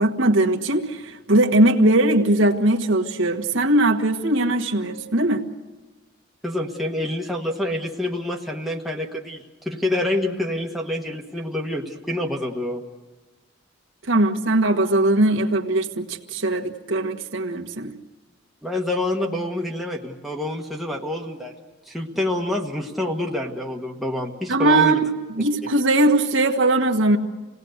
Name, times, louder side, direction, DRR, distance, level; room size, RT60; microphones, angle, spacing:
voice 1, 0.0-5.4 14.0-17.9 24.5-25.0 25.3-27.2, right 1 dB, 75° right, 3 dB, 1.5 m, -20 dB
voice 2, 6.4-12.8 18.6-21.5 21.9-25.0, left 1 dB, ahead, -1 dB, 1.4 m, -27 dB
27.5 x 18.0 x 8.0 m, 1.3 s
head